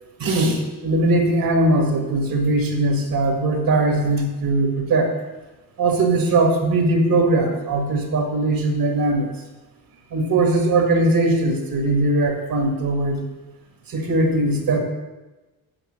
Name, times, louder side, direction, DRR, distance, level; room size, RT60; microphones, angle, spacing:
voice 1, 0.2-5.1 5.8-9.3 10.1-13.2 13.9-14.8, right 2 dB, 65° right, 2 dB, 2.1 m, -20 dB
8.7 x 6.7 x 6.6 m, 1.1 s
cardioid pair, 125°, 37 cm